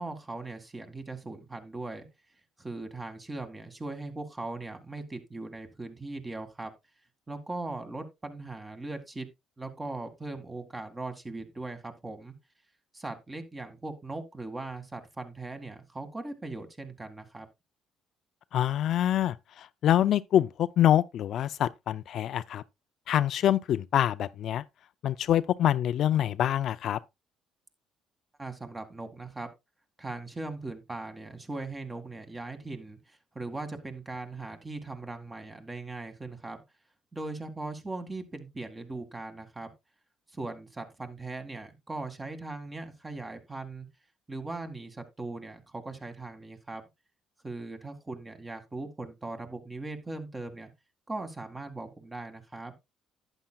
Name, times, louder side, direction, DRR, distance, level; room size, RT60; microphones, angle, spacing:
voice 1, 0.0-2.1 2.6-6.7 7.3-9.3 9.6-12.3 12.9-17.5 28.4-29.5 30.0-36.6 37.1-39.7 40.3-43.9 44.3-46.8 47.4-50.7 51.1-52.7, right 2 dB, 20° right, 2.0 m, -39 dB
voice 2, 18.5-22.6 23.1-24.6 25.0-27.0, left 11 dB, 65° left, 0.4 m, -25 dB
11.5 x 9.0 x 2.3 m
supercardioid pair, 80°, 0 cm